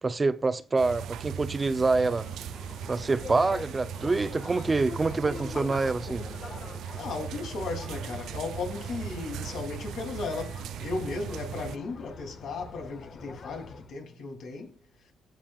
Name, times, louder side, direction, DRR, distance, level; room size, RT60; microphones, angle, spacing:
voice 1, 0.0-2.3 2.9-6.2, right 3 dB, 25° right, 0.7 m, -26 dB
sound 1, 0.8-11.8, right 9 dB, 80° right, 0.5 m, -39 dB
sound 2, 2.2-13.9, left 4 dB, 50° left, 1.7 m, -44 dB
voice 2, 6.9-14.8, left 3 dB, 70° left, 3.3 m, -36 dB
16.0 x 7.3 x 2.5 m
cardioid pair, 90°, 0 cm